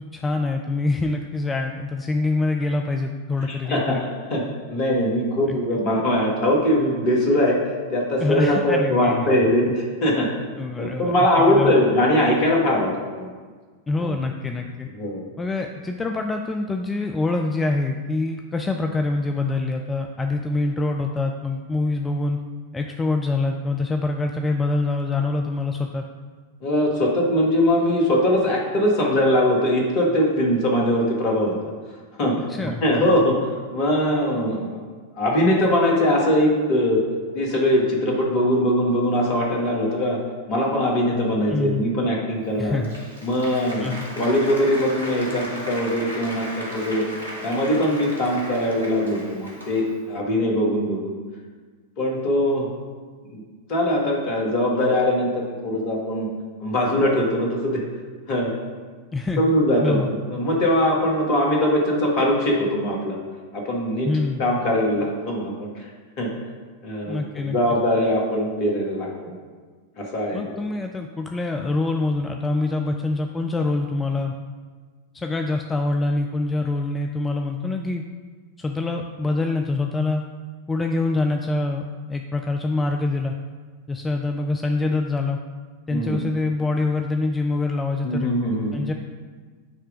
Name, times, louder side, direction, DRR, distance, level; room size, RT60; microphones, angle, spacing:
voice 1, 0.0-4.0 5.5-5.6 8.2-9.5 10.6-11.8 13.9-14.9 15.4-22.4 22.7-26.0 32.5-32.8 41.5-41.8 42.6-43.0 43.8-44.1 59.1-59.5 59.8-60.1 64.0-64.4 67.1-67.6 70.3-74.3 75.1-78.0 78.6-80.3 80.7-81.8 82.1-83.3 83.9-85.4 85.9-88.3 88.7-88.9, left 3 dB, 15° left, 4 dB, 0.4 m, -25 dB
voice 2, 3.4-7.6 7.9-10.3 10.8-13.3 14.0-14.1 14.9-15.2 26.6-31.5 32.2-32.3 32.6-33.3 33.7-34.8 35.2-37.0 37.3-40.2 40.5-42.8 43.2-43.9 44.2-47.0 47.4-51.1 52.0-52.7 53.3-53.4 53.7-56.3 56.6-57.8 58.3-58.5 59.4-60.0 60.3-63.2 63.5-64.1 64.4-65.5 66.2-66.3 66.8-69.1 70.0-70.4 85.9-86.2 88.0-88.8, left 1 dB, 40° left, -1 dB, 1.6 m, -21 dB
Applause, 42.5-50.1, equal, 80° right, 1.2 m, -36 dB
8.6 x 3.3 x 5.0 m, 1.5 s
figure-of-eight pair, 90°, 0 cm